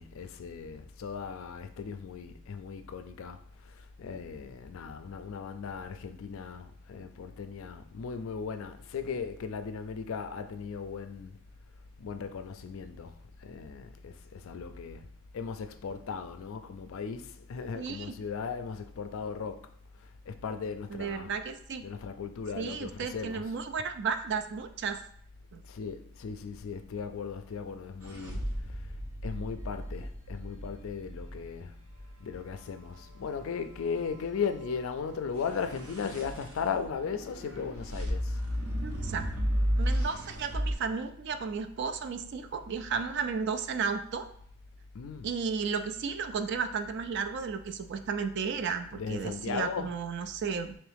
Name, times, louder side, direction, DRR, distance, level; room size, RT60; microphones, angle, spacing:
voice 1, 0.0-3.4 3.6-11.4 12.0-15.1 15.3-19.7 20.3-21.4 21.8-23.5 25.7-28.8 29.2-31.8 32.2-38.4 44.9-45.3 48.9-49.9, left 6 dB, 60° left, 0.3 m, -37 dB
voice 2, 17.7-18.1 20.9-21.8 22.6-25.0 25.5-25.6 38.8-39.3 39.8-44.3 45.2-50.8, right 5 dB, 50° right, 0.3 m, -33 dB
sound 1, 28.0-32.1 35.4-40.7, equal, 70° right, 0.8 m, -34 dB
3.5 x 3.1 x 3.4 m
head